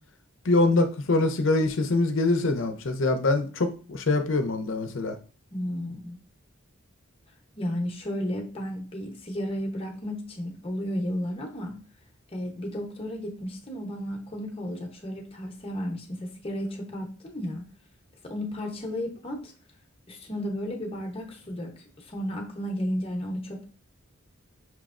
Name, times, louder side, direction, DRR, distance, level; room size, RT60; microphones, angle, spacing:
voice 1, 0.4-5.2, left 2 dB, 65° left, 7 dB, 0.6 m, -24 dB
voice 2, 5.5-6.2 7.6-11.8 12.3-17.6 18.2-19.5 20.1-23.6, equal, 25° left, 0 dB, 0.8 m, -33 dB
5.9 x 3.1 x 2.5 m, 0.38 s
head